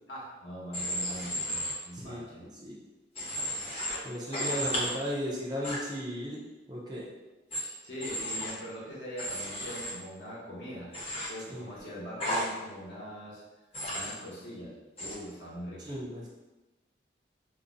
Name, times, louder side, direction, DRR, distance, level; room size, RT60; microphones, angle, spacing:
voice 1, 0.1-2.4 7.5-10.9 11.3-13.4 13.9-16.0, equal, 85° left, -6 dB, 0.9 m, -42 dB
Human voice / Train, 0.7-1.7 3.1-4.0 4.3-4.9 5.6-5.8 7.5-7.6 8.0-8.5 9.2-9.9 10.9-11.3 12.2-12.4 13.7-14.1 15.0-15.2, equal, 30° left, 0.6 m, -33 dB
voice 2, 1.9-2.7 4.0-6.4 6.7-7.1 11.5-11.7 15.8-16.2, equal, 20° right, -4 dB, 0.5 m, -36 dB
2.6 x 2.0 x 3.7 m, 1.1 s
head